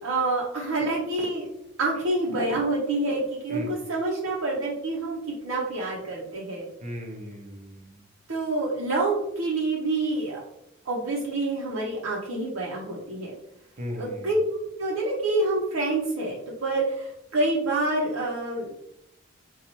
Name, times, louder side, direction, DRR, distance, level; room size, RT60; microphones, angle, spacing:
voice 1, 0.0-1.5 1.8-6.6 8.3-10.4 10.8-13.3 14.0-14.4 14.8-18.8, right 2 dB, 80° right, -4 dB, 0.7 m, -27 dB
voice 2, 6.8-8.0 13.8-14.3, left 1 dB, 35° right, 2 dB, 0.6 m, -37 dB
4.0 x 2.3 x 2.9 m, 0.79 s
head